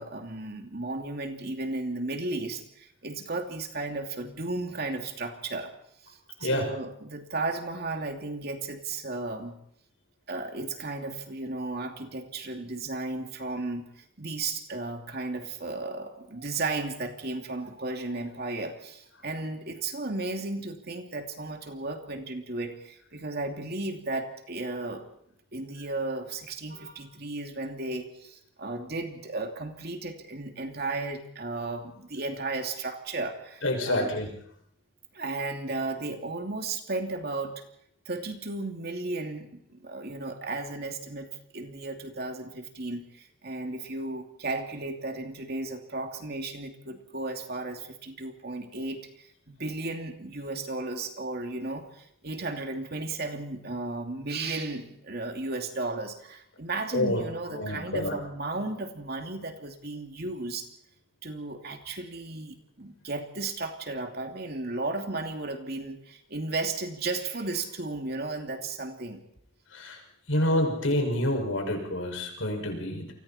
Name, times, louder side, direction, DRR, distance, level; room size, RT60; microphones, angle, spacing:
voice 1, 0.0-5.7 6.1-9.6 10.3-25.0 25.5-34.2 35.1-37.6 38.1-60.7 61.2-69.2, right 2 dB, 50° right, 4 dB, 2.7 m, -34 dB
voice 2, 33.6-34.3 56.9-57.2 57.5-58.1 69.7-70.0 70.3-73.1, left 1 dB, 80° left, 3 dB, 6.3 m, -27 dB
29.5 x 24.0 x 4.4 m, 0.70 s
head